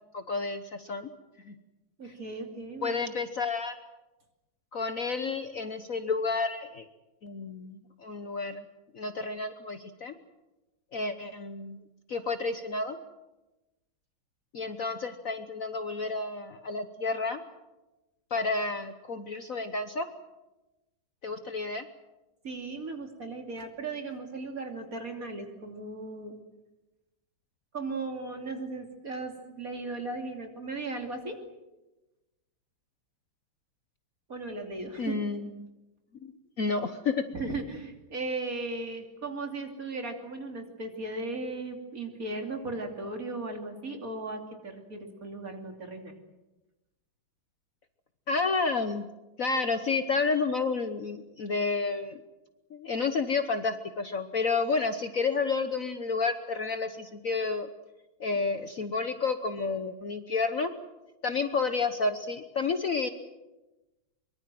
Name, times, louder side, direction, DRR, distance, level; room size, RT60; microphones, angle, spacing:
voice 1, 0.1-1.1 1.5-1.6 2.0-2.1 2.8-3.7 4.7-6.9 7.2-8.7 8.9-10.1 10.9-11.8 12.1-13.0 14.5-17.4 18.3-20.1 21.2-21.9 35.0-35.7 36.2-37.2 48.3-49.1 49.4-52.2 52.7-57.7 58.2-60.7 61.2-63.1, left 4 dB, 50° left, 9 dB, 1.3 m, -30 dB
voice 2, 2.0-3.0 22.4-26.4 27.7-31.4 34.3-35.1 37.3-46.1, right 3 dB, 45° right, 4 dB, 3.4 m, -37 dB
23.5 x 23.5 x 7.7 m, 1.0 s
omnidirectional pair, 2.2 m